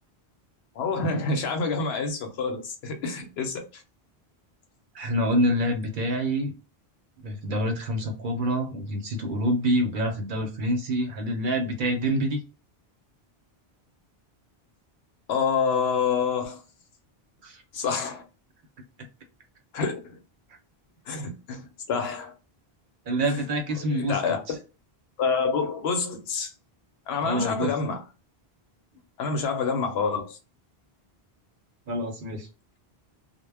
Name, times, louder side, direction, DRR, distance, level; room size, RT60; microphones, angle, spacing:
voice 1, 0.8-3.8 15.3-16.6 17.7-18.2 19.7-20.2 21.1-22.3 23.2-23.4 23.8-24.4 25.2-26.5 27.1-28.0 29.2-30.4, left 5 dB, 85° left, 0.9 m, -27 dB
voice 2, 4.9-6.5 7.2-12.4 17.4-17.6 23.1-24.2 27.2-27.7 31.9-32.5, equal, 60° right, 0.7 m, -26 dB
2.1 x 2.0 x 3.3 m
omnidirectional pair, 1.0 m